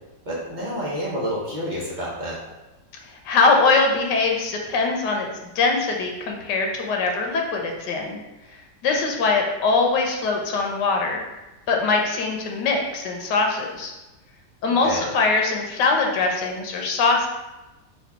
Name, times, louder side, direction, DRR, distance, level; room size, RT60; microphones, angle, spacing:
voice 1, 0.3-2.4 14.8-15.1, equal, 40° right, -5 dB, 0.7 m, -28 dB
voice 2, 3.2-5.3 5.5-8.2 8.8-11.2 11.7-13.9 14.6-17.3, left 3 dB, 85° left, 1 dB, 1.4 m, -22 dB
4.0 x 2.7 x 4.6 m, 1.0 s
omnidirectional pair, 1.8 m